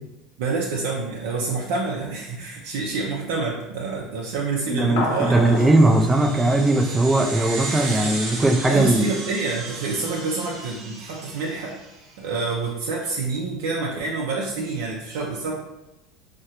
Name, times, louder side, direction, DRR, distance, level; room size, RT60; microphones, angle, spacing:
voice 1, 0.4-5.7 8.7-11.8 12.2-15.5, right 4 dB, 80° right, -2 dB, 0.4 m, -27 dB
voice 2, 4.7-9.1, right 2 dB, 10° right, 2 dB, 0.3 m, -19 dB
sound 1, 5.0-7.7, left 3 dB, 70° left, 0.5 m, -32 dB
sound 2, 5.2-12.0, right 3 dB, 50° right, 0.7 m, -35 dB
3.7 x 2.1 x 2.8 m, 0.93 s
supercardioid pair, 140°, 0 cm